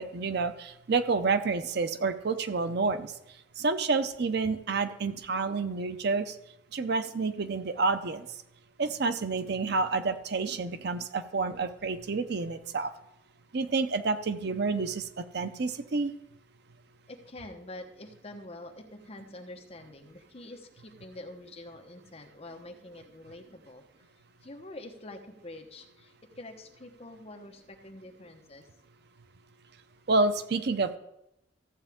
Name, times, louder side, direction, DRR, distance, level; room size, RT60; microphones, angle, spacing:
voice 1, 0.0-3.1 3.6-6.4 6.7-8.3 8.8-12.9 13.5-16.1 30.1-31.0, right 4 dB, 60° right, 10 dB, 0.6 m, -29 dB
voice 2, 17.1-23.8 24.4-28.7, left 1 dB, 35° left, 3 dB, 1.1 m, -46 dB
14.5 x 8.0 x 3.6 m, 0.83 s
head